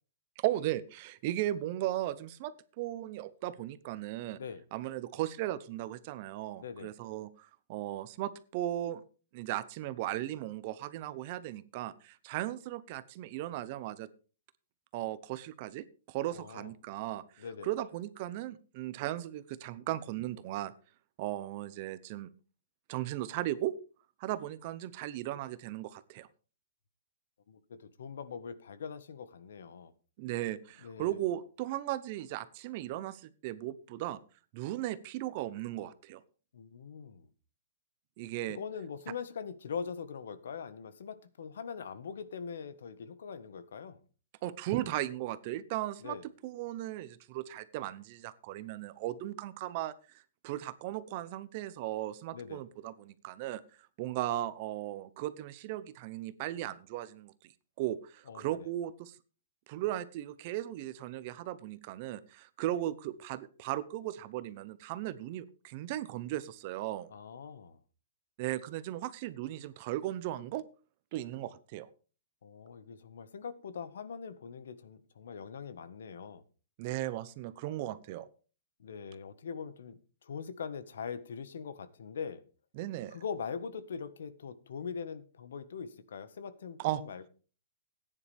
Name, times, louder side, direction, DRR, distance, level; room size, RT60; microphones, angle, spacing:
voice 1, 0.4-4.4 4.7-9.0 9.3-14.1 14.9-20.7 21.2-22.3 22.9-23.7 24.2-26.3 30.2-34.2 34.5-36.2 38.2-38.6 44.4-49.9 50.4-53.6 54.0-57.3 57.8-59.2 59.7-67.1 68.4-70.6 71.1-71.9 76.8-78.3 82.7-83.2 86.8-87.0, right 14 dB, 35° right, 16 dB, 0.7 m, -37 dB
voice 2, 6.6-6.9 16.3-16.7 17.4-17.7 27.5-29.9 30.8-31.2 36.5-37.3 38.5-44.0 46.0-46.2 52.3-52.6 58.3-58.7 67.1-67.8 72.4-76.4 78.8-82.4 83.1-87.3, left 6 dB, 80° left, 13 dB, 1.5 m, -42 dB
15.5 x 9.8 x 3.5 m, 0.35 s
hypercardioid pair, 170°, 0 cm